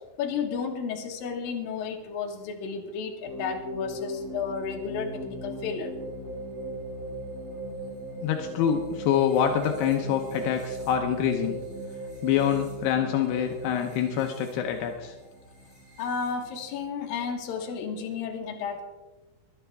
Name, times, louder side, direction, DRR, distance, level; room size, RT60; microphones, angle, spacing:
voice 1, 0.2-5.9 16.0-18.8, left 6 dB, 65° left, 3 dB, 2.5 m, -32 dB
sound 1, 3.2-16.8, right 1 dB, 20° right, 5.7 m, -38 dB
voice 2, 8.2-11.6 12.2-15.1, left 9 dB, 80° left, 3 dB, 2.3 m, -26 dB
23.0 x 9.9 x 3.5 m, 1.2 s
omnidirectional pair, 5.9 m